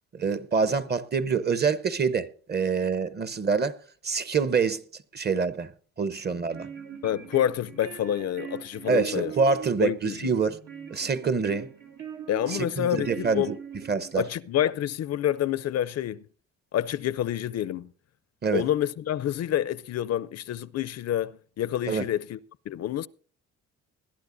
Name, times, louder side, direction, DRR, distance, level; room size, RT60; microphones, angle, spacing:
voice 1, 0.1-3.8 4.0-4.8 5.1-5.7 6.0-6.7 8.9-10.6 10.9-11.7 12.5-13.5 13.9-14.2 18.4-18.6 21.9-22.1, right 5 dB, 35° right, 0.9 m, -26 dB
sound 1, 6.3-14.3, right 8 dB, 80° right, 2.5 m, -42 dB
voice 2, 7.0-9.3 9.8-10.3 12.3-13.5 14.2-16.2 16.7-17.9 18.5-22.4 22.7-23.1, left 11 dB, 55° left, 0.5 m, -28 dB
20.5 x 11.5 x 2.6 m
cardioid pair, 90°, 30 cm